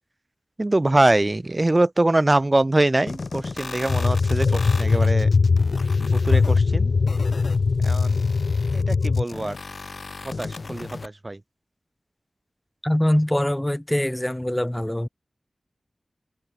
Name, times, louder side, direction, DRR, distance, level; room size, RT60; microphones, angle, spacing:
voice 1, 0.6-5.3 6.0-6.9 7.8-8.2 8.7-9.6 10.2-11.4, right 2 dB, 35° right, 0.5 m, -23 dB
sound 1, 3.1-11.1, left 3 dB, 70° left, 1.4 m, -37 dB
sound 2, 3.9-9.2, left 4 dB, 90° left, 0.3 m, -20 dB
voice 2, 12.8-15.1, left 1 dB, 15° left, 0.7 m, -23 dB
wide cardioid pair, 55°, 0 cm